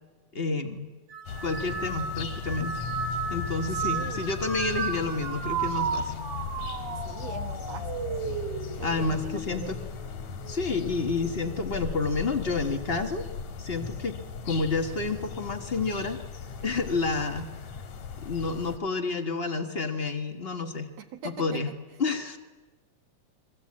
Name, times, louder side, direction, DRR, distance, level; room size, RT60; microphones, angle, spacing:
voice 1, 0.3-0.9 1.4-2.9 3.3-6.2 8.8-9.8 10.5-13.3 13.6-14.2 14.4-16.2 16.6-17.5 18.2-20.9 21.2-21.7 22.0-22.4, left 3 dB, 55° left, 6 dB, 0.6 m, -29 dB
sound 1, 1.1-10.7 11.1-11.7 12.7-13.1, right 5 dB, 40° right, 2.8 m, -34 dB
sound 2, 1.3-18.8, left 6 dB, 80° left, 3.4 m, -37 dB
voice 2, 3.7-4.4 7.0-8.5 8.8-9.7 21.0-21.7, right 6 dB, 65° right, 6 dB, 2.8 m, -42 dB
29.0 x 22.5 x 8.6 m, 1.3 s
omnidirectional pair, 3.3 m